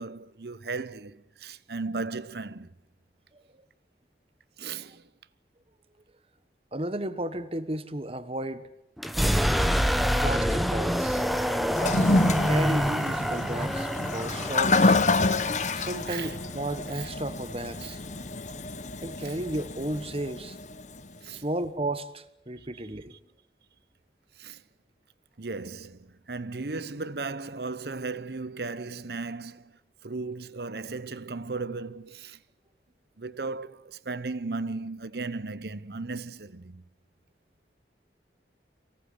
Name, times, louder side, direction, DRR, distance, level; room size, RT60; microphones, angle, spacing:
voice 1, 0.0-2.8 4.6-5.1 9.2-9.5 16.1-16.4 16.9-17.1 17.8-17.9 19.2-19.4 21.2-21.4 22.6-22.7 24.4-24.6 25.4-32.4 33.2-36.8, right 3 dB, 65° right, 0.9 m, -36 dB
voice 2, 6.7-8.6 10.2-11.3 12.2-15.0 15.7-18.0 19.0-20.6 21.3-23.1, right 1 dB, 35° right, 1.3 m, -33 dB
sound 1, 9.0-16.7, equal, ahead, 1.1 m, -27 dB
Toilet flush, 11.7-21.0, left 3 dB, 40° left, 1.1 m, -28 dB
24.0 x 18.5 x 9.6 m
head